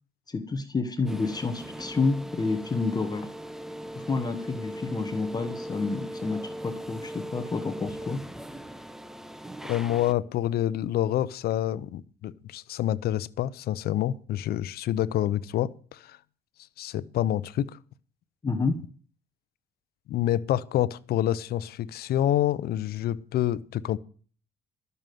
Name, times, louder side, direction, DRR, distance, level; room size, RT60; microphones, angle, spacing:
voice 1, 0.3-3.3 3.9-8.3 18.4-18.8, left 3 dB, 25° left, 1.1 m, -29 dB
sound 1, 1.1-10.1, equal, 5° right, 0.7 m, -39 dB
voice 2, 9.7-16.2 16.8-17.8 20.1-24.0, left 12 dB, 65° left, 0.8 m, -27 dB
12.5 x 6.8 x 9.2 m
cardioid pair, 110°, 17 cm